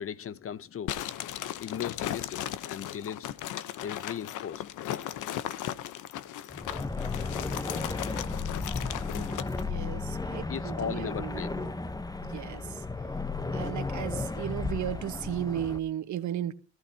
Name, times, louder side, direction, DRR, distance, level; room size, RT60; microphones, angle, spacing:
voice 1, 0.0-3.3 3.8-4.6 10.5-11.6, left 8 dB, 45° left, 0.8 m, -37 dB
sound 1, 0.9-9.7, left 12 dB, 85° left, 1.0 m, -37 dB
sound 2, 6.5-15.8, left 3 dB, 15° left, 1.0 m, -34 dB
voice 2, 9.6-11.7 12.2-12.8 13.5-16.5, right 11 dB, 70° right, 1.4 m, -35 dB
21.0 x 14.0 x 2.9 m
cardioid pair, 90°, 30 cm